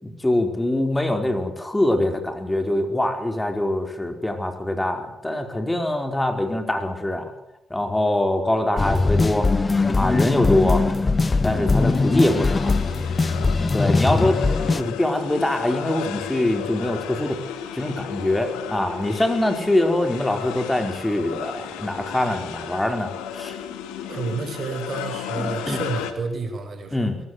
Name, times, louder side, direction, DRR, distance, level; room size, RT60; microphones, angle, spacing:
voice 1, 0.0-7.3 7.7-9.5 9.9-10.8 11.4-12.8 13.3-14.4 14.7-17.4 17.7-23.6 25.3-25.8 26.9-27.2, left 1 dB, 15° left, 5 dB, 4.7 m, -24 dB
sound 1, 8.8-14.8, left 3 dB, 30° left, 1.6 m, -21 dB
sound 2, 11.2-26.1, left 8 dB, 85° left, 2.2 m, -34 dB
voice 2, 24.0-27.1, right 4 dB, 50° right, 8 dB, 5.6 m, -30 dB
22.0 x 19.5 x 8.1 m, 0.82 s
supercardioid pair, 50°, 0 cm